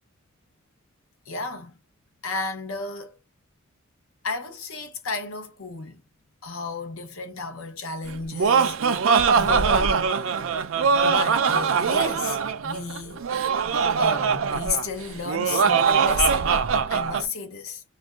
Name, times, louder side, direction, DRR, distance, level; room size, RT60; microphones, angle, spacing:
voice 1, 1.3-1.8 2.2-3.1 4.2-6.0 6.4-8.8 9.3-10.0 11.0-13.4 14.0-16.5 16.9-17.8, left 3 dB, 70° left, 0.8 m, -32 dB
Laughter, 8.1-17.2, right 6 dB, 65° right, 0.4 m, -22 dB
2.5 x 2.2 x 3.5 m
head